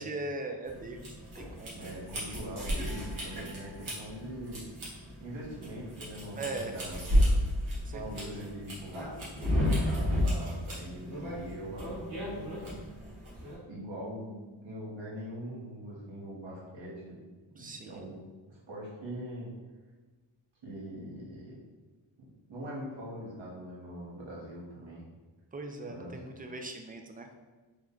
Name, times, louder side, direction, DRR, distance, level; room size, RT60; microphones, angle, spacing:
voice 1, 0.0-1.9 6.2-6.8 7.8-8.0 17.6-18.0 25.5-27.3, right 2 dB, 20° right, 4 dB, 0.3 m, -40 dB
sound 1, 0.7-13.6, equal, 90° right, 1.3 m, -32 dB
voice 2, 1.7-4.6 5.2-7.2 7.8-12.6 13.7-17.2 17.5-18.2 18.5-19.5 20.6-21.6 22.2-25.0 25.8-26.2, equal, 70° right, -5 dB, 1.2 m, -42 dB
3.5 x 2.1 x 3.7 m, 1.3 s
cardioid pair, 80°, 48 cm